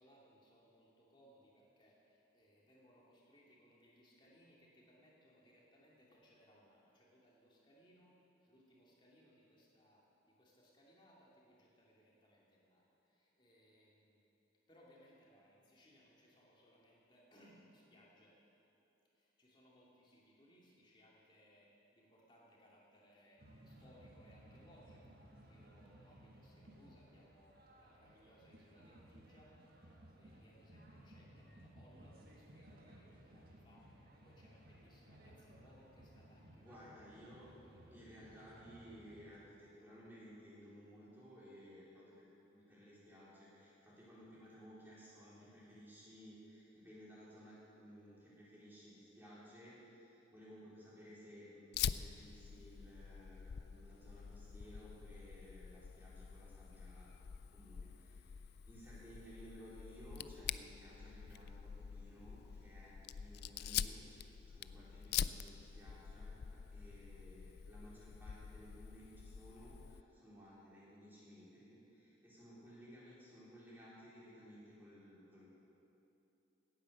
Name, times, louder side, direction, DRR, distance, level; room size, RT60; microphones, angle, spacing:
voice 1, 0.0-14.2 14.7-18.4 19.1-29.5 29.9-36.7, equal, 25° left, -4 dB, 2.7 m, -67 dB
sound 1, 23.4-39.4, right 1 dB, 50° right, 1.5 m, -60 dB
voice 2, 36.5-37.5 37.9-75.5, equal, 10° right, -8 dB, 3.7 m, -57 dB
Fire, 51.7-70.0, left 9 dB, 55° left, 0.3 m, -45 dB
17.0 x 9.6 x 6.6 m, 2.9 s
head